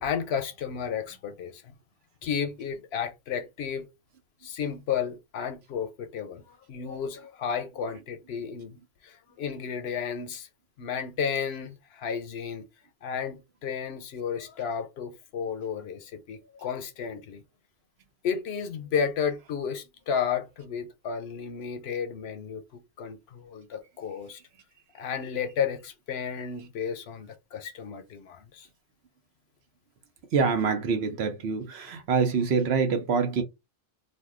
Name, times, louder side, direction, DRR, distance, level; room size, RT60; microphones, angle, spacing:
voice 1, 0.0-1.7 2.2-3.9 4.4-8.8 9.0-10.5 10.8-12.6 13.0-17.4 18.2-24.4 24.9-28.7, left 7 dB, 85° left, 0.9 m, -32 dB
voice 2, 30.3-33.4, right 5 dB, 80° right, 1.0 m, -25 dB
2.5 x 2.2 x 3.6 m
omnidirectional pair, 1.1 m